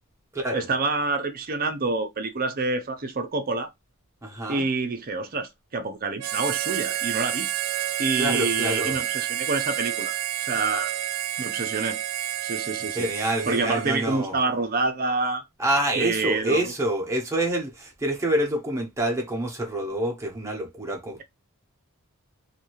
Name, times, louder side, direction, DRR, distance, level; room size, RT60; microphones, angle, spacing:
voice 1, 0.5-3.7 4.5-7.5 8.0-10.1 10.4-10.9 11.4-12.0 12.4-13.1 13.5-15.4 16.0-16.7, right 3 dB, 40° right, 0.6 m, -27 dB
voice 2, 4.2-4.7 8.2-9.0 12.9-14.3 15.6-21.2, right 1 dB, 15° right, 0.9 m, -27 dB
Harmonica, 6.2-14.2, right 12 dB, 80° right, 0.4 m, -29 dB
2.7 x 2.6 x 2.9 m
head